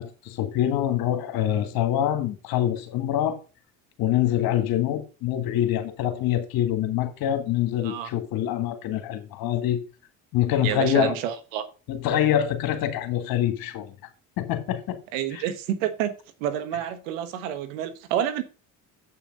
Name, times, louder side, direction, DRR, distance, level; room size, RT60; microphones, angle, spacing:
voice 1, 0.0-3.4 4.0-9.8 10.3-11.2 11.9-13.9 14.4-15.0 15.3-15.4, left 11 dB, 65° left, 1.9 m, -25 dB
voice 2, 10.6-11.6 15.1-16.1 16.4-18.4, right 10 dB, 85° right, 1.2 m, -28 dB
7.9 x 5.7 x 5.2 m
supercardioid pair, 75°, 39 cm